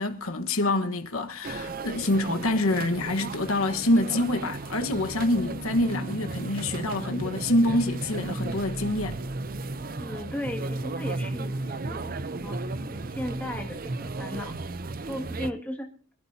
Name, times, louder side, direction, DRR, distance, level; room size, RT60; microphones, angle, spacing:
voice 1, 0.0-9.2, left 1 dB, 85° left, 1.4 m, -26 dB
sound 1, 1.4-15.5, right 2 dB, 40° right, 0.6 m, -34 dB
voice 2, 10.0-14.6 15.0-15.9, left 1 dB, 5° left, 2.1 m, -36 dB
25.5 x 12.5 x 2.8 m
head